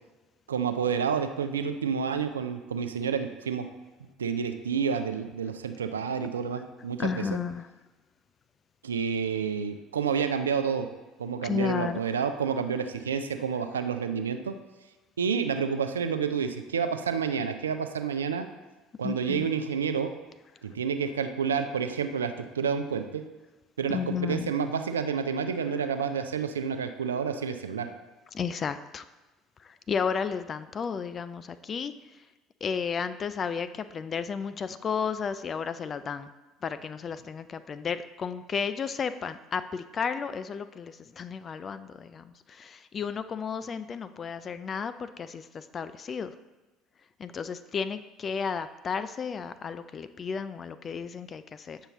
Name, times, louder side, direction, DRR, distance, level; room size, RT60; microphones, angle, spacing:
voice 1, 0.5-3.7 4.2-7.1 8.8-10.9 11.2-14.5 15.2-18.5 19.0-20.1 20.6-23.2 23.8-27.9, right 6 dB, 85° right, 8 dB, 0.4 m, -29 dB
voice 2, 7.0-7.7 11.4-12.1 19.0-19.5 23.9-24.5 28.3-29.0 29.6-32.2 32.6-36.3 36.6-46.3 47.2-51.8, left 6 dB, 40° left, 12 dB, 0.4 m, -33 dB
7.9 x 5.6 x 3.0 m, 1.2 s
hypercardioid pair, 65°, 0 cm